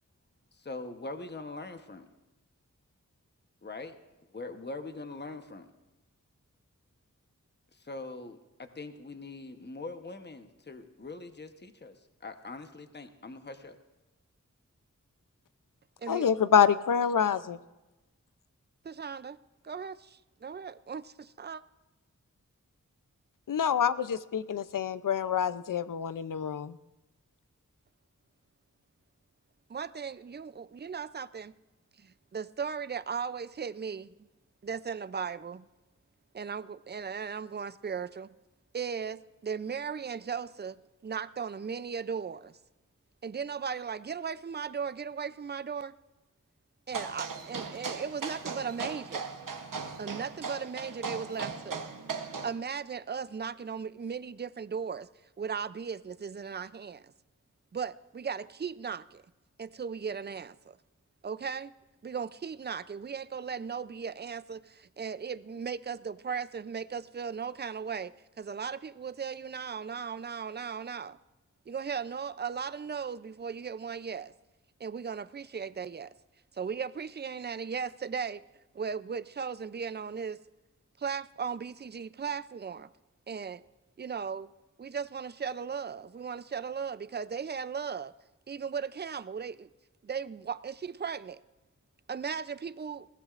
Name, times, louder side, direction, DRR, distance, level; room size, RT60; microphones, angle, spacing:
voice 1, 0.6-2.1 3.6-4.0 4.3-5.7 7.7-13.8, left 3 dB, 35° left, 1.0 m, -42 dB
voice 2, 16.1-17.6 23.5-26.8, left 7 dB, 80° left, 0.6 m, -26 dB
voice 3, 18.8-19.4 19.6-21.6 29.7-31.5 32.0-34.1 34.6-35.7 36.3-38.3 38.7-42.6 43.2-45.9 46.9-49.3 50.0-51.9 52.4-55.1 55.4-57.1 57.7-59.2 59.6-60.8 61.2-61.7 62.0-71.2 71.7-74.3 74.8-76.1 76.5-78.5 78.7-80.4 81.0-82.9 83.3-83.6 84.0-84.5 84.8-88.1 88.5-89.7 90.0-91.4 92.1-93.1, right 6 dB, 30° right, 0.5 m, -37 dB
sound 1, 46.9-52.5, right 5 dB, 75° right, 1.0 m, -38 dB
21.0 x 15.5 x 2.5 m
wide cardioid pair, 50°, 32 cm